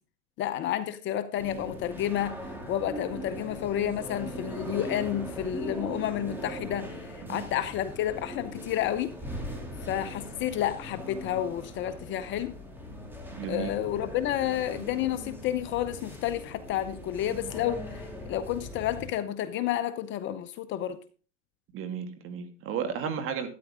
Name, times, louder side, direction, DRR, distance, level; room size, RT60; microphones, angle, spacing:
voice 1, 0.4-2.4 2.7-9.1 9.8-12.5 13.5-21.0, left 11 dB, 30° left, 0.7 m, -30 dB
sound 1, 1.4-19.1, equal, 5° right, 2.8 m, -40 dB
voice 2, 13.3-13.7 21.7-23.5, right 7 dB, 35° right, 2.3 m, -33 dB
13.0 x 9.8 x 3.6 m
hypercardioid pair, 125°, 37 cm